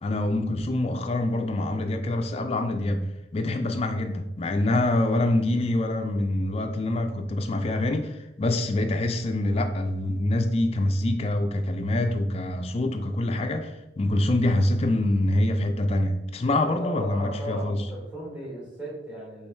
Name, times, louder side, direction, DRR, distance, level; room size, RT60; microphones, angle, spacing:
voice 1, 0.0-17.9, left 1 dB, 30° left, 6 dB, 0.3 m, -25 dB
voice 2, 16.4-19.5, equal, 5° right, -8 dB, 1.3 m, -36 dB
4.7 x 3.1 x 3.2 m, 0.94 s
head